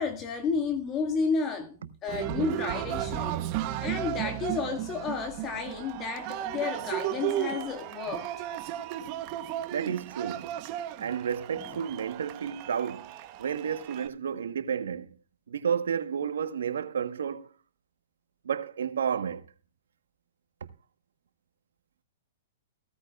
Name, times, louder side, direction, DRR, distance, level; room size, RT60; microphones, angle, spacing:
voice 1, 0.0-3.4 3.8-8.3, left 5 dB, 25° left, 1.9 m, -32 dB
Cheering, 2.1-14.1, right 12 dB, 40° right, 1.3 m, -34 dB
voice 2, 9.7-10.5 11.0-13.1 13.4-15.1 15.5-17.5 18.4-19.5, right 7 dB, 80° right, 1.3 m, -31 dB
16.0 x 14.0 x 2.4 m
hypercardioid pair, 130°, 0 cm